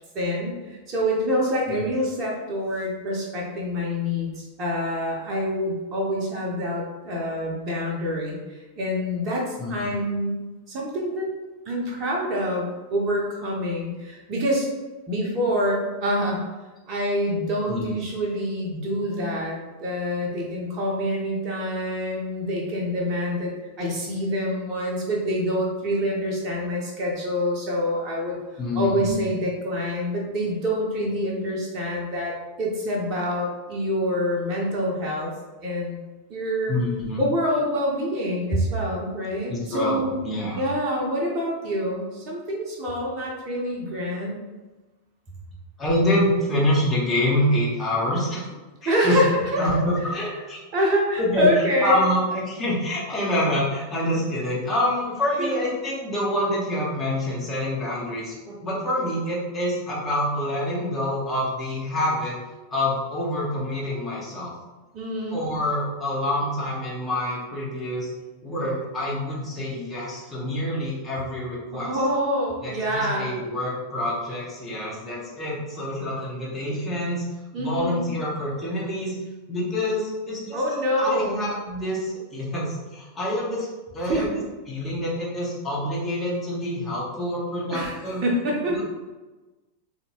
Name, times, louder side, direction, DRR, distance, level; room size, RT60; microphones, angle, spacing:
voice 1, 0.1-10.4 10.7-11.3 11.7-14.7 15.1-16.4 16.9-23.5 23.8-28.4 28.7-35.3 35.6-36.0 36.3-36.8 37.2-40.2 40.5-44.4 48.8-49.6 50.7-52.0 55.4-55.7 64.9-65.4 71.7-73.3 77.5-78.0 80.5-81.5 84.0-84.4 87.7-88.8, equal, 35° right, -3 dB, 0.9 m, -26 dB
voice 2, 9.6-9.9 17.7-17.8 28.6-29.2 36.7-37.2 39.5-40.6 45.8-48.4 48.8-49.2 49.6-50.6 51.2-51.5 51.8-62.4 62.7-64.5 65.3-68.1 68.4-72.0 72.6-77.2 77.6-79.2 79.5-83.7 83.9-84.4 84.7-88.2 88.7-88.8, left 1 dB, 20° left, -6 dB, 1.2 m, -26 dB
3.7 x 2.8 x 3.0 m, 1.2 s
figure-of-eight pair, 90°, 0 cm